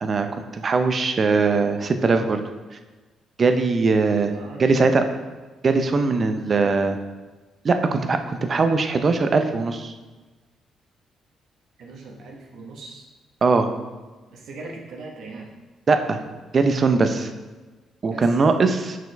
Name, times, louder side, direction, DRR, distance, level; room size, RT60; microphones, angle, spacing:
voice 1, 0.0-2.4 3.4-4.3 4.6-5.0 5.6-7.0 7.6-9.9 13.4-13.7 15.9-16.2 16.5-17.3 18.0-19.0, right 4 dB, 40° right, 7 dB, 0.6 m, -20 dB
voice 2, 4.3-5.1 11.8-13.1 14.3-15.6 18.1-18.4, right 2 dB, 70° right, -1 dB, 1.1 m, -39 dB
6.0 x 4.7 x 3.3 m, 1.2 s
cardioid pair, 90°, 0 cm